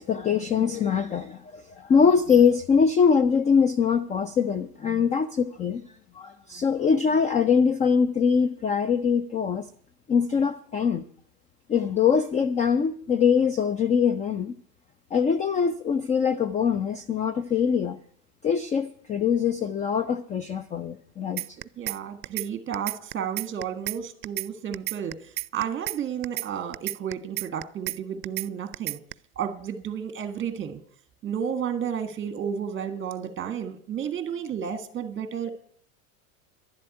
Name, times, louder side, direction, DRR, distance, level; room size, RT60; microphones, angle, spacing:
voice 1, 0.0-5.8 6.2-9.7 10.1-11.0 11.7-14.5 15.1-18.0 18.4-21.6, left 6 dB, 15° left, 0.4 m, -23 dB
sound 1, 21.4-22.0 22.2-22.5 22.7-24.0 24.2-24.5 24.7-26.0 26.2-26.5 26.7-28.0 28.2-28.5 28.7-29.1, right 19 dB, 75° right, 0.5 m, -31 dB
voice 2, 21.8-29.0 29.3-30.8 31.2-35.5, right 8 dB, 25° right, 1.6 m, -32 dB
11.5 x 7.6 x 9.5 m
hypercardioid pair, 105°, 46 cm